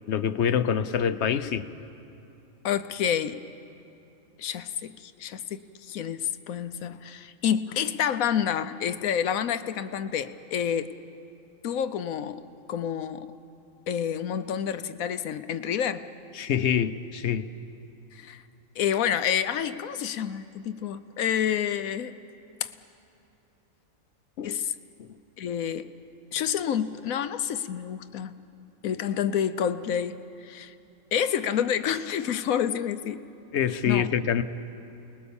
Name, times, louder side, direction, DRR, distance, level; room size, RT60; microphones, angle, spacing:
voice 1, 0.1-1.7 16.3-17.5 24.4-24.5 25.0-25.1 33.5-34.4, left 8 dB, 60° left, 12 dB, 0.9 m, -25 dB
voice 2, 2.6-3.4 4.4-10.9 11.6-12.4 12.7-13.3 13.9-16.0 18.1-18.4 18.8-22.1 22.6-22.7 24.4-24.7 25.4-25.9 26.3-28.5 28.8-30.7 31.1-33.2 33.8-34.1, left 9 dB, 90° left, 12 dB, 1.2 m, -28 dB
28.5 x 20.5 x 7.1 m, 2.8 s
omnidirectional pair, 1.4 m